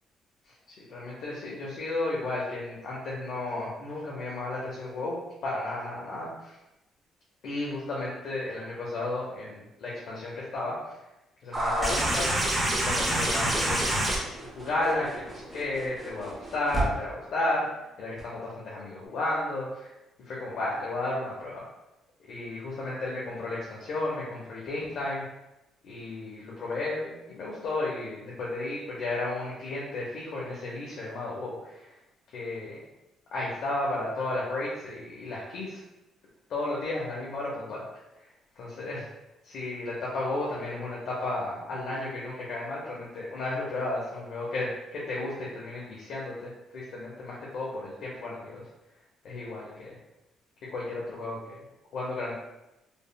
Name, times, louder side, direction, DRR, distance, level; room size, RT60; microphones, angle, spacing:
voice 1, 0.4-6.6 7.4-11.0 11.4-14.1 14.4-19.9 20.2-21.6 22.3-25.2 25.8-32.0 32.3-32.8 33.3-35.8 36.5-37.8 38.2-38.3 38.6-39.1 39.4-48.6 49.2-50.0 50.7-51.6 51.9-52.3, left 2 dB, 60° left, -6 dB, 0.6 m, -33 dB
sound 1, 11.5-16.8 18.2-18.3, right 1 dB, 15° right, 0.6 m, -28 dB
3.4 x 2.0 x 2.2 m, 0.94 s
cardioid pair, 150°, 0 cm